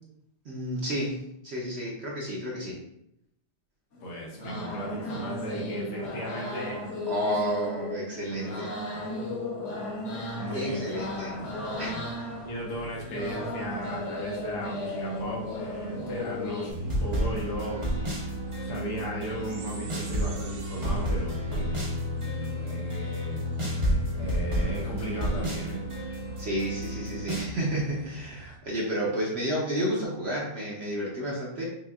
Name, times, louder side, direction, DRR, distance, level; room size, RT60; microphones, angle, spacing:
voice 1, 0.4-2.8 7.1-8.7 10.5-11.4 11.8-11.9 26.4-31.7, equal, 55° right, -4 dB, 0.8 m, -31 dB
sound 1, 3.9-16.7, left 1 dB, 55° left, 1.0 m, -35 dB
voice 2, 4.0-6.8 7.2-7.3 8.3-8.6 8.8-8.9 10.4-12.0 12.4-17.8 18.1-21.7 22.2-23.4 24.1-25.8, equal, 85° left, -2 dB, 1.6 m, -36 dB
sound 2, 10.7-28.6, right 2 dB, 80° right, 1.3 m, -48 dB
sound 3, 16.7-27.5, equal, 40° right, 0.4 m, -30 dB
5.3 x 2.3 x 2.3 m, 0.77 s
omnidirectional pair, 1.7 m